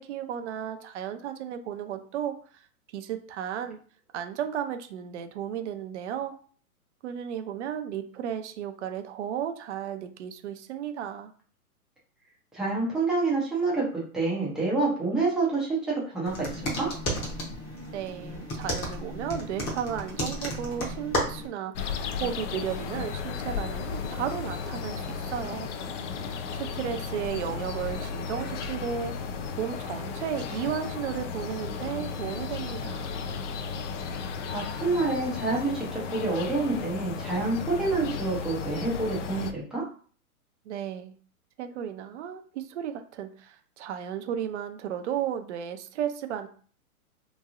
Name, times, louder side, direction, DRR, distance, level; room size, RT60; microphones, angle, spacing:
voice 1, 0.0-2.6 2.9-3.8 4.1-6.4 7.0-11.3 17.9-25.7 26.5-33.2 40.7-41.2 41.6-46.5, right 9 dB, 50° right, 7 dB, 0.5 m, -34 dB
voice 2, 12.5-16.9 34.5-39.8, right 3 dB, ahead, -7 dB, 0.5 m, -28 dB
sound 1, 16.3-21.5, equal, 20° left, 0.8 m, -33 dB
sound 2, 21.7-39.5, left 5 dB, 55° left, 0.5 m, -34 dB
3.0 x 2.6 x 2.4 m, 0.43 s
hypercardioid pair, 135°, 45 cm